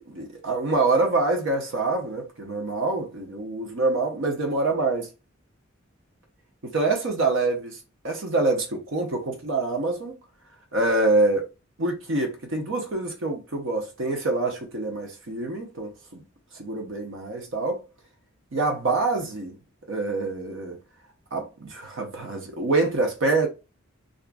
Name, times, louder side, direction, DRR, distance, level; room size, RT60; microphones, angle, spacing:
voice 1, 0.0-5.1 6.6-7.8 8.0-10.2 10.7-11.5 11.8-16.2 16.5-17.8 18.5-19.6 19.9-20.8 21.3-23.5, right 2 dB, 65° right, 0.7 m, -26 dB
2.5 x 2.3 x 2.4 m
head